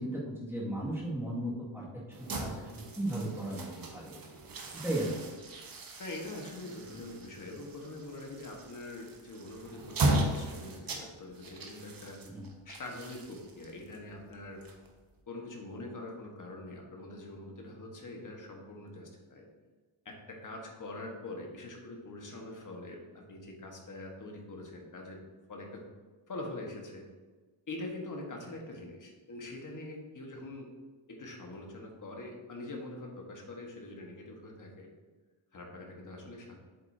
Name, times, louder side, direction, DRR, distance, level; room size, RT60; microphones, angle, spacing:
voice 1, 0.0-1.8 2.2-4.1 4.7-5.3 6.9-7.0 12.2-12.4, right 1 dB, 5° right, -7 dB, 2.1 m, -36 dB
sound 1, 2.1-15.2, right 2 dB, 45° right, 1.1 m, -37 dB
voice 2, 6.0-12.2 12.6-14.6 15.3-19.5 20.0-25.2 25.5-25.8 26.3-27.1 27.7-30.7 31.1-34.9 35.5-36.6, left 2 dB, 40° left, 0 dB, 1.5 m, -44 dB
8.0 x 7.8 x 2.8 m, 1.4 s
wide cardioid pair, 160°, 50 cm